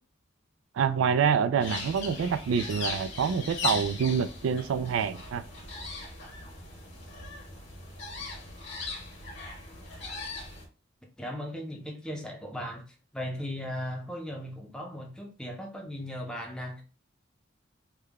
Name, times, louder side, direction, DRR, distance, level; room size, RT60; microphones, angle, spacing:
voice 1, 0.7-5.4, right 7 dB, 90° right, 0.3 m, -26 dB
sound 1, 1.6-10.7, left 3 dB, 65° left, 1.5 m, -38 dB
voice 2, 11.2-12.8 13.1-16.8, equal, 5° left, 0.6 m, -37 dB
3.5 x 2.2 x 3.4 m
head